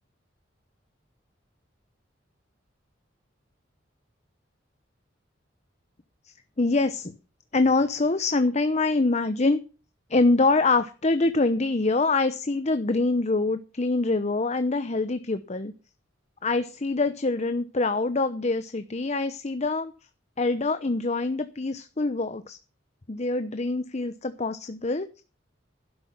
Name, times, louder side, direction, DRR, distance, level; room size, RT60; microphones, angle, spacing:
voice 1, 6.3-7.1 7.5-9.6 10.1-15.7 16.4-19.9 20.4-22.6 23.1-25.2, left 3 dB, 35° left, 10 dB, 0.8 m, -25 dB
12.0 x 10.5 x 5.7 m, 0.34 s
head